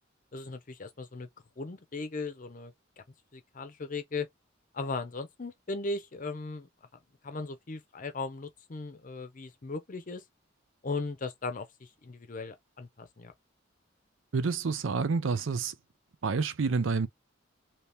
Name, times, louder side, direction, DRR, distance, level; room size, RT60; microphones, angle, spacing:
voice 1, 0.3-1.3 1.6-2.7 3.3-4.3 4.7-6.7 7.2-10.2 10.8-13.3, left 3 dB, 40° left, 0.6 m, -37 dB
voice 2, 14.3-15.7 16.2-17.1, right 4 dB, 75° right, 0.5 m, -28 dB
2.9 x 2.8 x 3.4 m
head